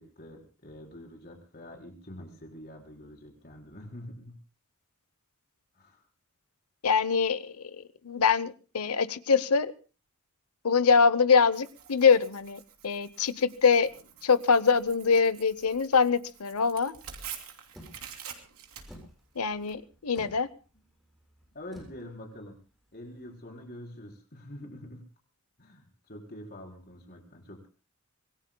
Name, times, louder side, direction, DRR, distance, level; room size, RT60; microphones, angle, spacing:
voice 1, 0.0-4.4 5.7-6.0 21.5-22.6 22.9-25.1 25.6-27.7, left 1 dB, 45° left, 0 dB, 4.4 m, -46 dB
voice 2, 6.8-7.5 8.0-9.7 10.6-13.9 14.2-16.9 19.4-20.5, left 5 dB, 90° left, 15 dB, 0.8 m, -24 dB
Tearing, 11.5-19.7, right 8 dB, 80° right, 3.0 m, -47 dB
sound 1, 17.7-23.3, equal, ahead, 7.3 m, -53 dB
26.0 x 20.5 x 2.3 m, 0.34 s
head